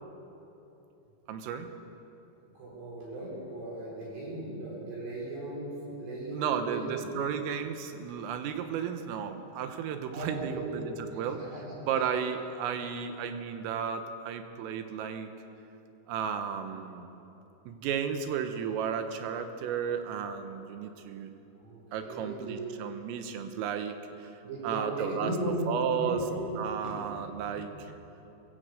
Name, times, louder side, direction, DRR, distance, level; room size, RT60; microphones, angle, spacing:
voice 1, 1.3-1.7 6.3-11.4 11.8-15.3 16.1-17.1 17.7-21.3 21.9-24.3 24.6-25.3 25.7-26.2 26.6-27.9, right 7 dB, 90° right, 7 dB, 3.7 m, -33 dB
voice 2, 2.6-7.1 7.3-7.4 10.1-11.6 21.6-22.7 24.4-26.4 26.8-26.9 27.4-27.6, right 1 dB, 55° right, -4 dB, 7.7 m, -36 dB
22.0 x 15.5 x 7.9 m, 3.0 s
omnidirectional pair, 5.9 m